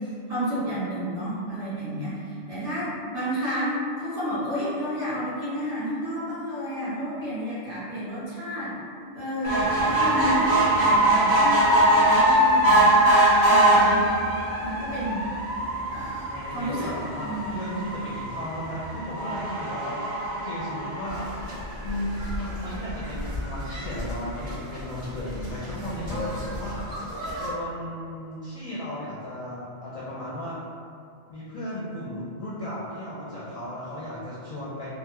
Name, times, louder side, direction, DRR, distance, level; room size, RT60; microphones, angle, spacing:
voice 1, 0.0-8.8 9.1-13.1 13.4-14.1 14.6-15.3 15.9-16.9 17.2-17.7, equal, 35° right, -13 dB, 1.4 m, -31 dB
sound 1, 9.4-22.0 22.6-22.7 23.0-23.1 23.3-23.4, right 1 dB, 55° right, 0.9 m, -22 dB
voice 2, 16.3-21.5 21.8-27.0 27.4-30.6 31.3-34.9, equal, 45° left, -8 dB, 0.4 m, -35 dB
sound 2, 21.1-27.5, left 1 dB, 75° right, 1.9 m, -35 dB
3.6 x 2.0 x 2.8 m, 2.4 s
omnidirectional pair, 1.1 m